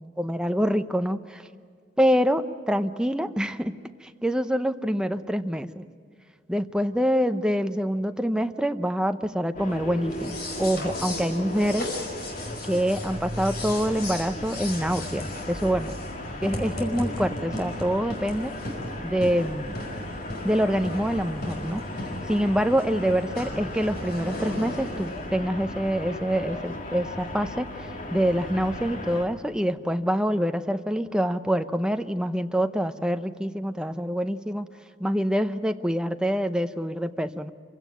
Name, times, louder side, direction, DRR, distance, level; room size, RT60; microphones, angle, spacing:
voice 1, 0.0-1.4 2.0-3.7 4.0-5.8 6.5-11.9 12.6-15.9 16.4-18.5 19.0-19.8 20.4-21.8 22.3-34.7 35.0-37.5, equal, 5° right, 8 dB, 0.7 m, -26 dB
sound 1, 9.5-29.2, left 1 dB, 50° left, 2.3 m, -36 dB
sound 2, 10.0-25.3, left 1 dB, 65° left, 5.1 m, -37 dB
26.0 x 16.5 x 9.1 m, 2.2 s
head